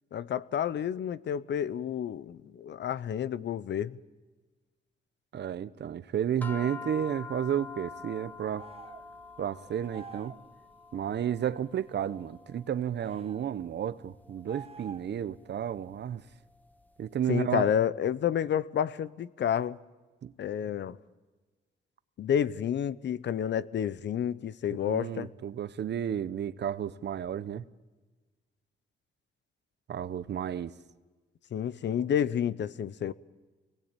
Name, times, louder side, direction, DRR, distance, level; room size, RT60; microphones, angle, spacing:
voice 1, 0.1-4.0 17.3-19.8 20.4-21.0 22.2-25.3 31.5-33.1, left 9 dB, 75° left, 0.8 m, -30 dB
voice 2, 5.3-8.7 9.4-10.3 10.9-16.2 17.0-17.7 20.2-20.3 24.8-27.7 29.9-30.7, right 9 dB, 65° right, 0.9 m, -32 dB
sound 1, 6.4-16.9, left 5 dB, 10° left, 1.6 m, -47 dB
sound 2, 8.6-9.1 9.9-10.4 13.0-13.5 14.5-15.2, right 5 dB, 30° right, 0.8 m, -47 dB
26.0 x 20.5 x 8.9 m
cardioid pair, 90°, 19 cm